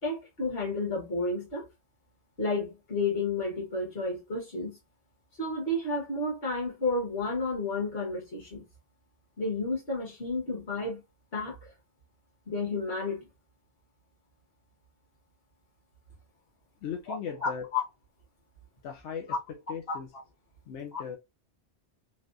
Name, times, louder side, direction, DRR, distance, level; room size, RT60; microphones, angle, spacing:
voice 1, 0.0-1.7 2.4-4.8 5.4-8.6 9.4-11.0 11.3-11.7 12.5-13.3 17.4-17.8 19.9-20.0 20.9-21.0, left 3 dB, 55° left, 1.6 m, -31 dB
voice 2, 16.8-17.7 18.8-20.1 20.7-21.2, left 7 dB, 85° left, 0.9 m, -38 dB
3.3 x 2.2 x 2.5 m
omnidirectional pair, 1.2 m